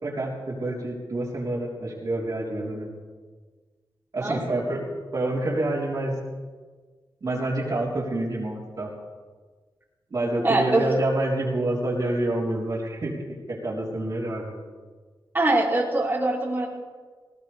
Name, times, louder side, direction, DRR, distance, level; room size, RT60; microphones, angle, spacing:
voice 1, 0.0-2.9 4.1-4.8 5.1-6.1 7.2-8.9 10.1-13.2 13.5-14.5, right 1 dB, 50° right, -4 dB, 3.7 m, -27 dB
voice 2, 4.2-4.6 10.4-10.8 15.3-16.7, right 2 dB, 25° right, -5 dB, 3.2 m, -23 dB
18.5 x 18.5 x 3.4 m, 1.4 s
wide cardioid pair, 115°, 8 cm